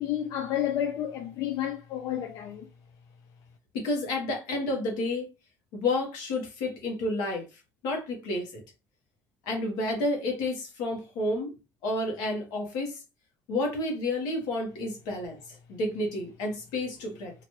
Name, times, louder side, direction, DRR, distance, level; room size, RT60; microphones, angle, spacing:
voice 1, 0.0-2.7, left 11 dB, 60° left, 0.4 m, -30 dB
voice 2, 3.7-5.3 5.7-8.6 9.5-11.5 11.8-13.0 13.5-17.3, left 2 dB, 85° left, 1.2 m, -30 dB
2.9 x 2.5 x 3.0 m
cardioid pair, 160°, 7 cm